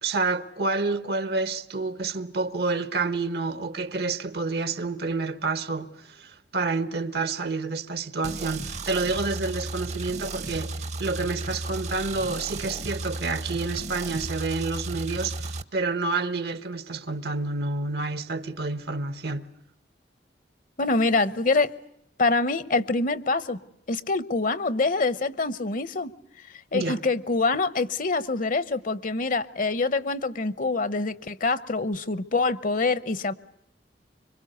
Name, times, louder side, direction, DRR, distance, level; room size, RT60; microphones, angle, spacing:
voice 1, 0.0-19.5 26.7-27.0, right 3 dB, 65° right, 1.2 m, -29 dB
sound 1, 8.2-15.6, right 2 dB, 40° right, 0.9 m, -34 dB
voice 2, 20.8-21.7 22.2-23.6 23.9-26.1 26.7-33.3, left 3 dB, 50° left, 0.9 m, -25 dB
25.5 x 24.0 x 8.0 m
head